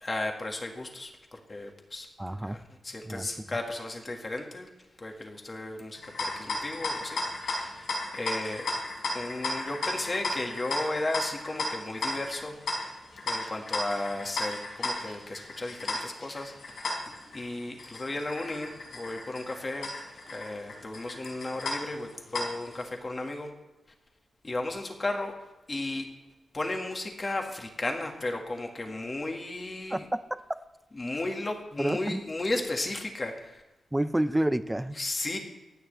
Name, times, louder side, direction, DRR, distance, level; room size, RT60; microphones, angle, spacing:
voice 1, 0.0-2.1 2.4-4.7 5.0-7.9 8.1-8.7 9.1-12.6 13.3-17.0 17.3-23.5 24.4-25.3 25.7-26.1 26.5-30.1 30.9-33.6 35.0-35.4, left 2 dB, 30° left, 2 dB, 1.8 m, -34 dB
voice 2, 2.2-2.6 3.0-3.3 29.9-30.4 31.8-32.2 33.9-35.0, right 1 dB, 10° right, 12 dB, 0.5 m, -29 dB
sound 1, 5.9-22.8, left 2 dB, 75° left, 3.8 m, -35 dB
25.0 x 9.5 x 3.3 m, 1.1 s
wide cardioid pair, 135°, 0 cm